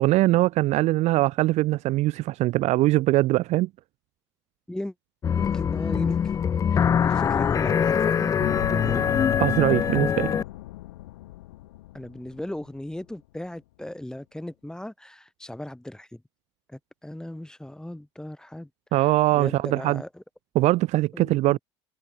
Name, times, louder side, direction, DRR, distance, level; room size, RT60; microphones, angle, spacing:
voice 1, 0.0-3.7 9.4-10.3 18.9-20.0 20.5-21.6, right 17 dB, 50° right, 1.5 m, -22 dB
sound 1, 5.2-10.4, left 7 dB, 25° left, 0.4 m, -23 dB
voice 2, 5.4-9.1 11.9-16.2 16.7-20.2 21.1-21.6, left 1 dB, 5° left, 7.2 m, -37 dB
sound 2, 8.4-12.7 12.9-13.0, left 17 dB, 70° left, 2.6 m, -35 dB
figure-of-eight pair, 70°, 14 cm